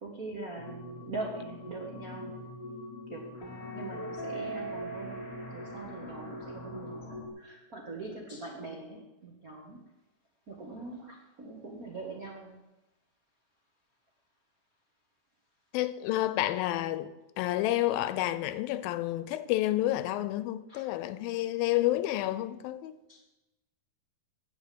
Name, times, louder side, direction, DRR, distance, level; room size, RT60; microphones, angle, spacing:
voice 1, 0.0-2.4 3.1-3.3 3.7-5.2 5.5-9.8 10.5-12.6 20.7-20.8 23.1-23.2, right 3 dB, 70° right, 0.8 m, -42 dB
sound 1, 0.6-7.3, equal, 45° left, 2.5 m, -41 dB
voice 2, 15.7-23.0, left 15 dB, 90° left, 2.5 m, -30 dB
9.5 x 7.1 x 8.4 m
omnidirectional pair, 4.1 m